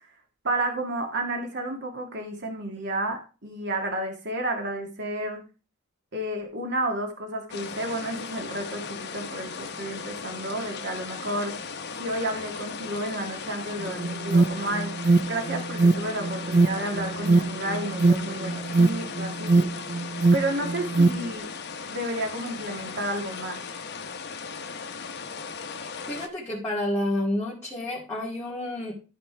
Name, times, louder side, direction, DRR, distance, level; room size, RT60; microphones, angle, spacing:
voice 1, 0.4-5.4 6.1-11.5 12.0-14.9 15.3-19.7 20.3-21.5 21.9-23.6, right 1 dB, 55° right, 3 dB, 1.9 m, -31 dB
sound 1, 7.5-26.3, left 5 dB, 55° left, 1.0 m, -37 dB
Alarm, 13.8-21.3, right 3 dB, 40° right, 0.5 m, -22 dB
voice 2, 26.1-28.9, left 1 dB, 15° left, -7 dB, 2.2 m, -29 dB
13.0 x 4.4 x 4.6 m, 0.33 s
head